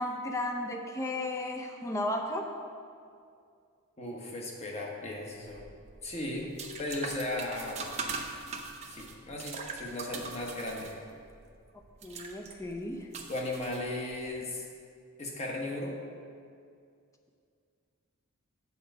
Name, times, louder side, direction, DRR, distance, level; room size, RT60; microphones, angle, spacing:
voice 1, 0.0-2.5 12.0-13.1, left 1 dB, 15° left, 2 dB, 0.5 m, -34 dB
voice 2, 4.0-5.7 6.0-6.5 6.8-7.9 8.9-10.9 13.3-14.7 15.2-16.0, left 1 dB, 30° left, -1 dB, 1.2 m, -36 dB
sound 1, 5.4-14.3, right 4 dB, 30° right, 0.7 m, -42 dB
8.5 x 4.5 x 6.6 m, 2.3 s
head